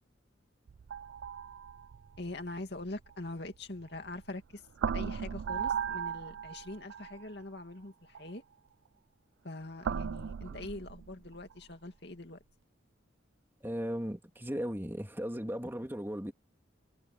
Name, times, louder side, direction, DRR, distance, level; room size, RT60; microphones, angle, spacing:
sound 1, 0.7-4.3 4.8-7.3 8.2-8.3 9.8-11.7, right 7 dB, 80° right, 0.4 m, -37 dB
voice 1, 2.2-4.6 4.9-8.4 9.4-12.4, left 2 dB, 55° left, 2.7 m, -43 dB
voice 2, 13.6-16.3, equal, 10° right, 2.7 m, -37 dB
head